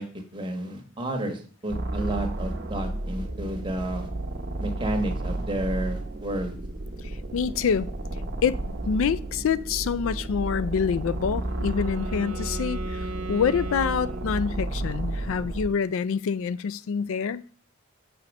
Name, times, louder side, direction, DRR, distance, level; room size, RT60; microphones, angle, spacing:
voice 1, 0.0-4.1 4.6-6.6, right 1 dB, 20° right, 1.1 m, -31 dB
sound 1, 1.7-15.7, right 1 dB, 50° right, 1.0 m, -32 dB
voice 2, 7.3-7.9 8.4-8.6 8.9-17.4, left 6 dB, 65° left, 0.3 m, -26 dB
Wind instrument woodwind instrument, 11.0-14.9, right 2 dB, 75° right, 1.1 m, -38 dB
7.0 x 4.2 x 5.2 m
head